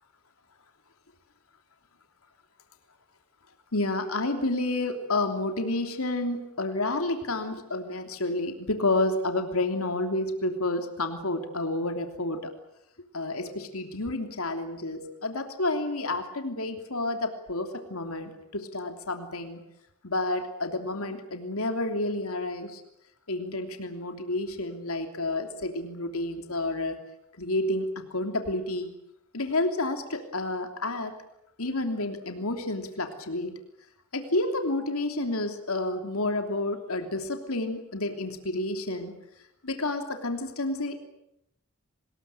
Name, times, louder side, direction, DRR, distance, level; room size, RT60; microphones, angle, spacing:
voice 1, 3.7-12.5 13.1-19.6 20.0-22.8 23.3-27.0 27.4-29.0 29.3-31.1 31.6-33.6 34.1-39.1 39.6-41.0, left 2 dB, 75° left, 5 dB, 3.1 m, -30 dB
25.0 x 21.0 x 9.0 m, 0.80 s
head